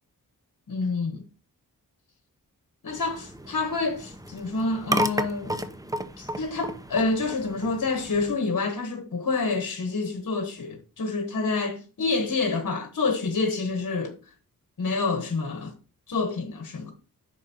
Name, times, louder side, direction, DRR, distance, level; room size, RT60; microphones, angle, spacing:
voice 1, 0.7-1.2 2.8-5.6 6.2-14.1 14.8-15.7 16.1-16.9, left 3 dB, 60° left, 1.3 m, -28 dB
sound 1, 2.9-8.4, right 1 dB, 10° right, 0.8 m, -33 dB
9.1 x 6.2 x 2.9 m
wide cardioid pair, 95°, 35 cm